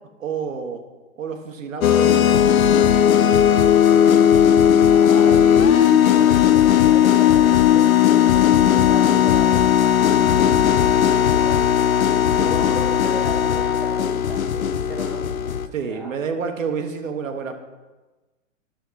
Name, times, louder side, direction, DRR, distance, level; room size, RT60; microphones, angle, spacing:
voice 1, 0.2-0.9 1.2-3.0 15.7-17.5, right 6 dB, 70° right, 5 dB, 1.1 m, -29 dB
sound 1, 1.8-15.7, left 9 dB, 90° left, 0.6 m, -16 dB
voice 2, 3.9-9.5 9.8-11.5 12.3-16.1, equal, ahead, -4 dB, 1.3 m, -36 dB
10.0 x 6.5 x 3.9 m, 1.2 s
hypercardioid pair, 130°, 40 cm